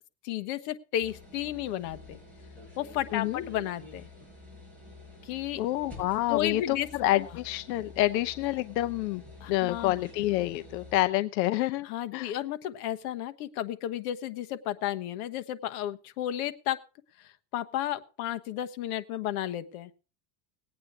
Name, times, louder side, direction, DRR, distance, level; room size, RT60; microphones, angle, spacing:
voice 1, 0.2-2.2 2.8-4.0 5.2-5.6 6.3-6.9 9.4-9.9 11.8-16.8 17.2-19.9, left 12 dB, 60° left, 10 dB, 1.2 m, -33 dB
sound 1, 1.0-11.0, left 2 dB, 5° left, 5.5 m, -48 dB
voice 2, 3.1-3.4 5.6-9.2 9.5-11.9 12.1-12.3, left 16 dB, 85° left, 11 dB, 0.7 m, -28 dB
19.0 x 8.7 x 4.8 m, 0.36 s
supercardioid pair, 160°, 50 cm